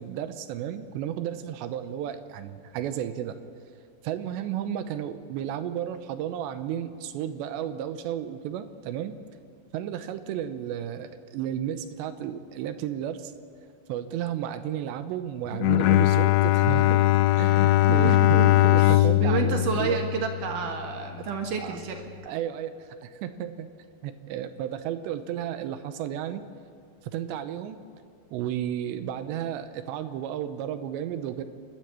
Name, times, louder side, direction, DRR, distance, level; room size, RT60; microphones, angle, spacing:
voice 1, 0.0-3.4 4.0-9.1 9.7-13.3 13.9-17.0 17.4-20.0 21.2-21.3 21.6-21.8 22.3-23.7 24.0-26.4 27.1-27.8 28.3-31.4, right 10 dB, 85° right, 10 dB, 2.9 m, -33 dB
Bowed string instrument, 15.5-20.9, left 16 dB, 80° left, 2.7 m, -21 dB
voice 2, 17.9-22.0, right 6 dB, 60° right, 3 dB, 2.5 m, -30 dB
29.0 x 12.5 x 8.3 m, 2.4 s
omnidirectional pair, 5.2 m